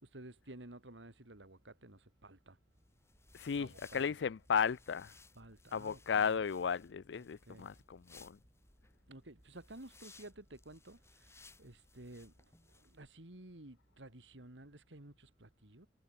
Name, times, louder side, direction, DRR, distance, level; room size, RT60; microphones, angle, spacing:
voice 1, 0.0-2.6 3.6-4.1 5.4-6.4 7.5-7.7 9.1-15.9, right 1 dB, 90° right, 2.7 m, -54 dB
sound 1, 2.8-13.0, left 3 dB, 15° left, 3.5 m, -62 dB
voice 2, 3.3-5.1 5.7-8.4, left 6 dB, 75° left, 0.4 m, -35 dB
head